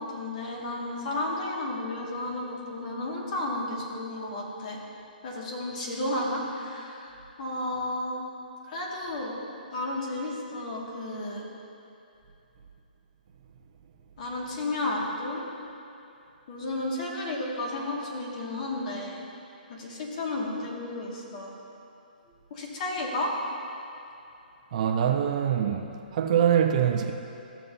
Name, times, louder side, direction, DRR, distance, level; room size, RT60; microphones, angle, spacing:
voice 1, 0.0-4.8 5.2-8.2 8.7-9.4 9.7-11.5 14.2-15.4 16.5-19.2 19.7-21.5 22.5-23.3, left 2 dB, 50° left, 2.1 m, -32 dB
voice 2, 24.7-27.1, right 9 dB, 45° right, 0.8 m, -24 dB
14.5 x 7.4 x 2.8 m
hypercardioid pair, 145°, 5 cm